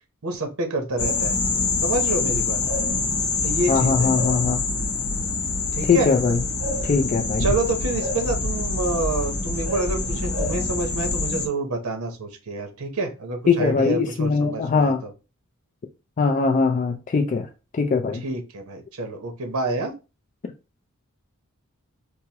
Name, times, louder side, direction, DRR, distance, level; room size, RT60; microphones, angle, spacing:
voice 1, 0.2-1.4 1.8-2.6 3.4-4.1 5.7-6.1 7.4-15.1 18.2-19.9, right 2 dB, 85° right, 0.8 m, -28 dB
sound 1, 1.0-11.5, left 3 dB, 85° left, 0.8 m, -25 dB
voice 2, 3.7-4.6 5.9-6.4 6.8-7.5 13.5-15.0 16.2-17.5 17.7-18.2, left 4 dB, 35° left, 0.3 m, -21 dB
4.6 x 2.0 x 2.8 m
head